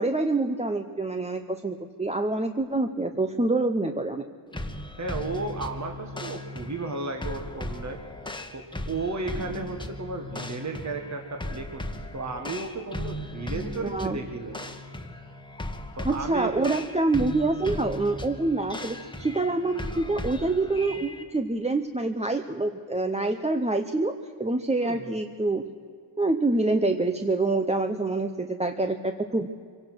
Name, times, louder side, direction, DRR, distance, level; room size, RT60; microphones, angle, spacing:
voice 1, 0.0-4.2 13.8-14.2 16.0-25.6 26.2-29.5, right 2 dB, 15° right, 6 dB, 0.7 m, -26 dB
sound 1, 4.5-21.2, left 1 dB, 10° left, 1.4 m, -37 dB
voice 2, 5.0-8.0 8.5-14.6 16.0-16.8 24.8-25.1, right 3 dB, 35° right, 3 dB, 1.7 m, -34 dB
26.0 x 17.0 x 6.2 m, 2.2 s
wide cardioid pair, 110°, 49 cm